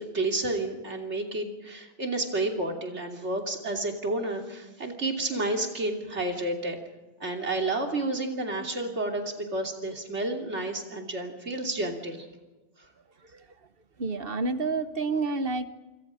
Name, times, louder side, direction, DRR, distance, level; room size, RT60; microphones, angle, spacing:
voice 1, 0.0-6.8 7.2-12.3, right 2 dB, 80° right, 2 dB, 3.3 m, -30 dB
voice 2, 14.0-15.7, right 3 dB, 55° right, 11 dB, 1.3 m, -29 dB
26.5 x 26.5 x 5.1 m, 1.2 s
omnidirectional pair, 1.2 m